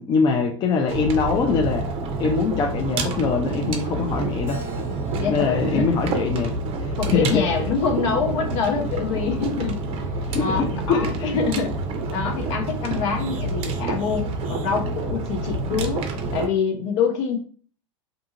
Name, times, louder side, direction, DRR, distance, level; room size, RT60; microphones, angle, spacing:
voice 1, 0.0-1.9 2.2-4.6 5.3-7.4 10.3-11.4, left 4 dB, 25° left, 4 dB, 0.4 m, -23 dB
sound 1, 0.9-16.5, right 2 dB, 35° right, 0.6 m, -28 dB
Keyboard (musical), 4.5-7.0 7.6-8.8, left 1 dB, 15° right, 1.3 m, -45 dB
sound 2, 5.0-16.2, right 3 dB, 80° right, 0.5 m, -40 dB
voice 2, 5.2-5.9 7.0-9.9 10.4-10.6 10.9-11.8 12.1-16.1 16.3-17.4, left 6 dB, 60° left, 4 dB, 0.7 m, -25 dB
2.6 x 2.3 x 2.8 m, 0.43 s
hypercardioid pair, 110°, 17 cm